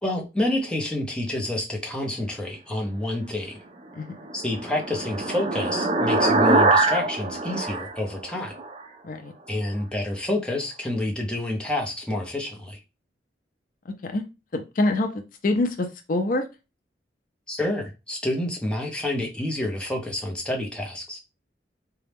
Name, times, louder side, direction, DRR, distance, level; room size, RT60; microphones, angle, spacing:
voice 1, 0.0-3.6 4.3-8.5 9.5-12.8 17.5-21.2, left 1 dB, 5° left, 0.7 m, -28 dB
sound 1, 4.0-8.8, right 2 dB, 35° right, 0.4 m, -23 dB
voice 2, 14.5-15.1 15.4-16.4, left 2 dB, 50° left, 0.4 m, -25 dB
4.0 x 2.3 x 3.4 m
head